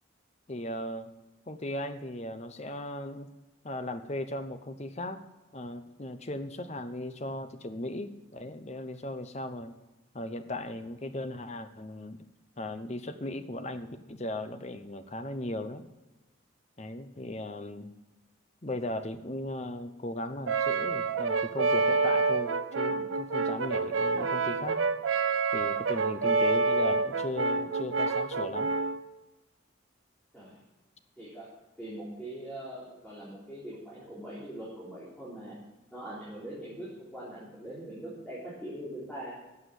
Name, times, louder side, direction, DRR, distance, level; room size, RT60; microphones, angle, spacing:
voice 1, 0.5-1.1 1.5-3.3 3.6-5.2 5.5-9.7 10.1-12.2 12.6-15.8 16.8-17.9 18.6-24.8 25.5-28.7, left 1 dB, 35° left, 9 dB, 0.8 m, -37 dB
Brass instrument, 20.5-29.0, right 4 dB, 85° right, 0.7 m, -28 dB
voice 2, 31.8-35.5 35.9-39.3, right 1 dB, 5° left, -9 dB, 3.8 m, -42 dB
12.0 x 7.5 x 8.2 m, 1.1 s
head